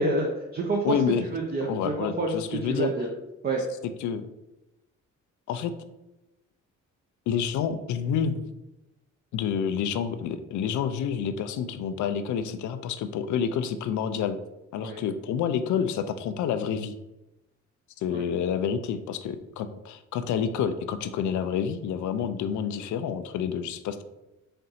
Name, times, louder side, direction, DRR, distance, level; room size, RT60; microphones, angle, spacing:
voice 1, 0.0-1.0 1.3-3.1 3.4-3.6 14.8-15.0 18.1-18.2, right 2 dB, 30° right, 1 dB, 0.6 m, -28 dB
voice 2, 0.8-1.2 1.6-2.9 4.0-4.2 5.5-5.7 7.3-8.5 9.3-14.4 14.7-16.9 18.0-24.0, left 7 dB, 75° left, 10 dB, 0.5 m, -28 dB
4.3 x 2.6 x 4.1 m, 0.96 s
cardioid pair, 90°, 30 cm